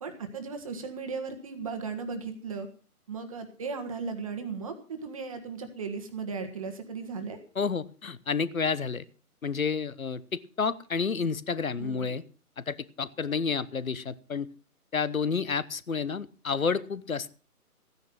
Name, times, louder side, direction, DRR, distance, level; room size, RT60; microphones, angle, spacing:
voice 1, 0.0-2.7 3.1-7.4 11.8-12.2, right 5 dB, 20° right, 6 dB, 1.5 m, -36 dB
voice 2, 7.5-9.1 9.4-12.2 12.6-14.5 14.9-17.3, left 5 dB, 65° left, 17 dB, 1.2 m, -30 dB
15.0 x 10.5 x 6.0 m, 0.37 s
figure-of-eight pair, 150°, 45 cm